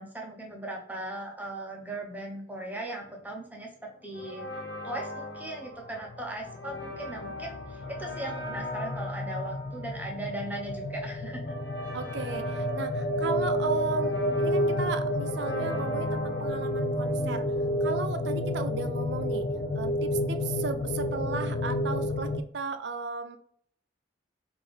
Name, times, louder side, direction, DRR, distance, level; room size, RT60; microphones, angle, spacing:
voice 1, 0.0-4.5 4.8-11.5, right 1 dB, 10° right, 0 dB, 0.8 m, -38 dB
sound 1, 4.1-17.9, left 2 dB, 65° left, 1.2 m, -41 dB
sound 2, 5.9-22.4, left 1 dB, 35° left, 0.3 m, -30 dB
voice 2, 11.9-17.4 17.8-19.5 19.7-23.4, right 4 dB, 65° right, 8 dB, 0.5 m, -35 dB
5.5 x 2.6 x 3.4 m, 0.62 s
head